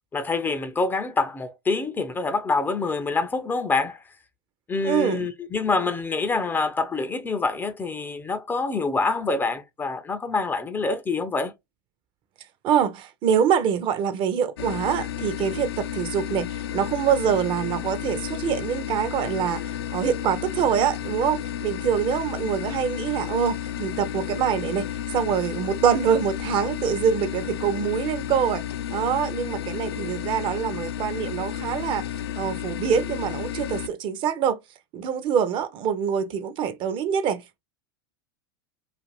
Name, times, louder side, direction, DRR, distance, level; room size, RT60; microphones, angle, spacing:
voice 1, 0.1-4.0 4.7-11.5, left 3 dB, 15° left, 0.4 m, -26 dB
voice 2, 4.8-5.3 12.6-28.6 28.9-32.0 32.4-34.6 34.9-37.6, right 8 dB, 40° right, 0.5 m, -25 dB
sound 1, 14.6-33.9, left 11 dB, 80° left, 0.4 m, -32 dB
2.5 x 2.5 x 2.9 m
hypercardioid pair, 105°, 13 cm